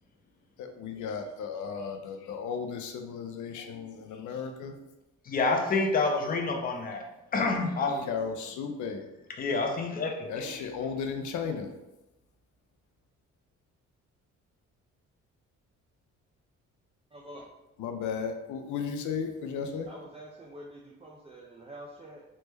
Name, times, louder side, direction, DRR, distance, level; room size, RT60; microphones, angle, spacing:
voice 1, 0.6-4.7 8.0-9.0 10.3-11.7 17.8-19.9, left 6 dB, 75° left, 6 dB, 0.5 m, -35 dB
voice 2, 5.3-7.0 7.3-8.1 9.4-10.6, left 3 dB, 30° left, 2 dB, 0.5 m, -28 dB
voice 3, 17.1-17.4 19.9-22.2, right 1 dB, 20° right, -3 dB, 0.4 m, -46 dB
3.2 x 2.1 x 3.3 m, 0.95 s
cardioid pair, 90°, 30 cm